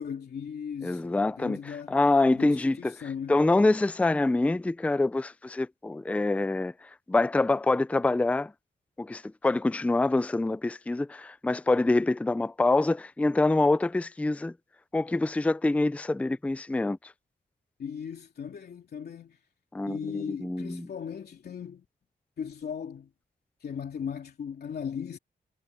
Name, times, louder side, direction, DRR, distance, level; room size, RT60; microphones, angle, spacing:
voice 1, 0.0-2.0 2.3-3.4 17.8-19.4 19.9-21.8 22.4-23.1 23.6-25.2, left 7 dB, 60° left, 3.0 m, -37 dB
voice 2, 0.8-1.6 1.9-3.0 3.3-8.5 9.0-14.5 14.9-17.0 19.7-20.9, left 2 dB, 5° left, 0.4 m, -25 dB
wide cardioid pair, 145°, 18 cm